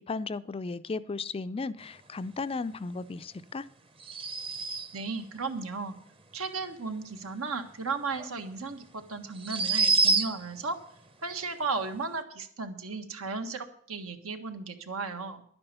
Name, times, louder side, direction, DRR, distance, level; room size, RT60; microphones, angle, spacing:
voice 1, 0.1-3.7, left 4 dB, 25° left, 14 dB, 0.4 m, -35 dB
sound 1, 4.0-5.1 8.2-8.3 9.3-10.6, right 3 dB, 25° right, 0.8 m, -27 dB
voice 2, 4.9-5.9 6.3-10.8 11.2-15.4, right 4 dB, 80° right, 7 dB, 1.6 m, -35 dB
11.0 x 9.7 x 6.8 m, 0.64 s
head